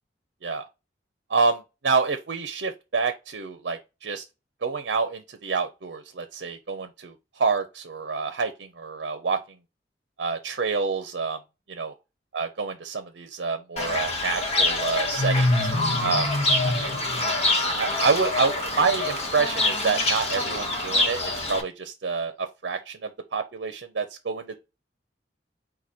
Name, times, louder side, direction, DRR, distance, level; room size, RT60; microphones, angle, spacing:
voice 1, 1.3-4.2 4.6-9.4 10.2-11.4 11.7-11.9 12.3-15.7 16.0-16.3 16.5-16.8 17.2-17.3 17.8-24.6, right 4 dB, 70° right, 0.6 m, -28 dB
Fowl / Bird, 13.8-21.6, left 2 dB, 35° left, 1.1 m, -25 dB
4.8 x 2.2 x 4.2 m
head